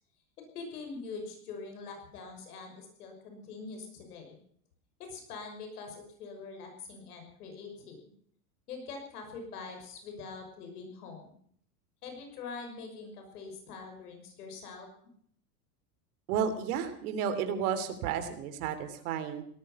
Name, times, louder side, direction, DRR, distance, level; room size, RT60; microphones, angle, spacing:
voice 1, 0.4-4.4 5.0-8.0 8.7-11.3 12.0-14.9, left 4 dB, 85° left, 4 dB, 6.1 m, -44 dB
voice 2, 16.3-19.4, right 8 dB, 75° right, 9 dB, 3.1 m, -32 dB
18.5 x 13.5 x 5.8 m, 0.63 s
supercardioid pair, 105°, 44 cm